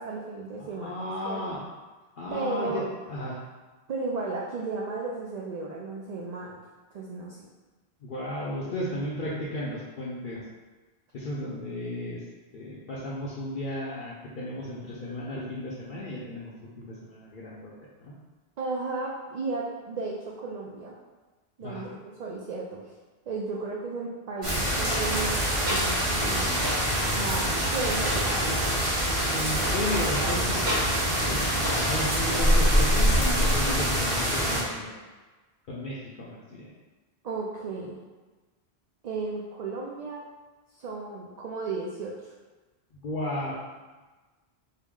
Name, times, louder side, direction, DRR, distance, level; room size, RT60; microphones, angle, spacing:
voice 1, 0.0-1.4 2.3-2.9 3.9-6.6 6.9-7.5 18.6-20.9 21.6-22.8 23.3-26.6 27.1-28.7 29.9-30.4 31.2-31.5 37.2-38.0 39.0-40.2 40.7-42.3, right 3 dB, 55° right, -3 dB, 0.5 m, -34 dB
voice 2, 0.6-1.6 2.2-3.4 8.0-10.4 11.1-12.2 12.5-16.5 16.8-17.7 18.0-18.1 21.6-22.0 29.3-30.6 31.3-31.4 31.8-34.9 35.7-36.7 42.9-43.5, left 1 dB, 60° left, -6 dB, 0.7 m, -34 dB
sound 1, 24.4-34.6, equal, 35° right, 0.9 m, -25 dB
sound 2, 24.8-34.7, right 1 dB, 75° right, 1.5 m, -34 dB
4.5 x 2.1 x 3.6 m, 1.3 s
omnidirectional pair, 1.1 m